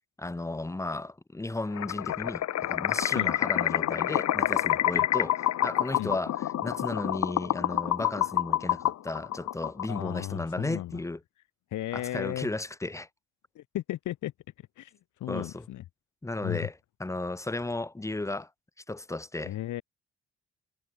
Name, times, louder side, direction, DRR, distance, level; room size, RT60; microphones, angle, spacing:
voice 1, 0.2-5.4 5.6-11.2 11.9-13.1 15.3-15.6 16.2-18.5 18.9-19.6, left 2 dB, 10° left, 1.0 m, -34 dB
sound 1, 1.7-10.2, left 12 dB, 60° left, 1.1 m, -28 dB
voice 2, 9.9-11.0 11.7-12.5 13.5-14.3 14.8-14.9 15.2-15.8 16.4-16.7 19.4-19.8, left 14 dB, 80° left, 1.6 m, -34 dB
cardioid pair, 90°, 30 cm